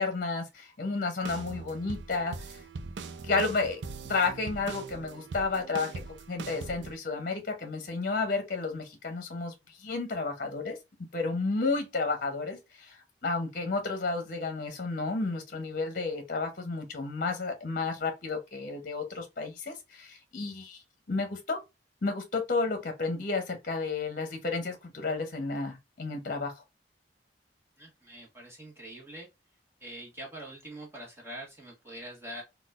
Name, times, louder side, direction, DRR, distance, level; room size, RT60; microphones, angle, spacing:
voice 1, 0.0-2.6 3.2-3.8 4.1-9.5 9.8-10.8 11.1-20.8 21.1-21.6 22.0-26.6, left 3 dB, 50° left, 0.8 m, -32 dB
sound 1, 1.2-7.0, right 4 dB, 80° right, 0.4 m, -41 dB
voice 2, 27.8-29.3 29.8-32.4, right 1 dB, 15° right, 1.4 m, -44 dB
3.9 x 2.3 x 2.4 m
head